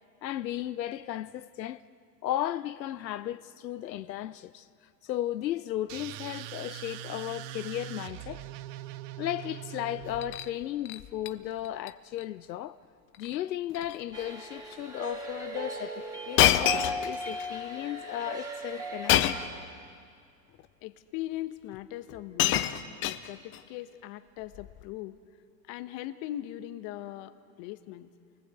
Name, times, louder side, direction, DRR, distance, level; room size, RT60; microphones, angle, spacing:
voice 1, 0.2-1.8 2.2-4.7 5.0-8.4 9.2-12.8 13.2-19.2, left 12 dB, 85° left, 0.8 m, -35 dB
sound 1, 5.9-10.7, right 13 dB, 40° right, 0.7 m, -42 dB
Shatter, 10.0-10.5 10.8-11.3 11.6-11.9 12.2-12.3 13.1-13.4 13.7-14.0 14.7-14.8 16.4-17.5 19.1-19.6 20.6-20.7 21.7-21.8 22.1-23.6 24.5-24.8, left 12 dB, 25° left, 0.7 m, -27 dB
sound 2, 14.1-19.5, right 1 dB, 5° right, 3.4 m, -38 dB
voice 2, 20.8-22.7 23.0-25.2 25.7-28.1, left 14 dB, 40° left, 1.3 m, -40 dB
29.0 x 19.5 x 8.2 m
hypercardioid pair, 130°, 50 cm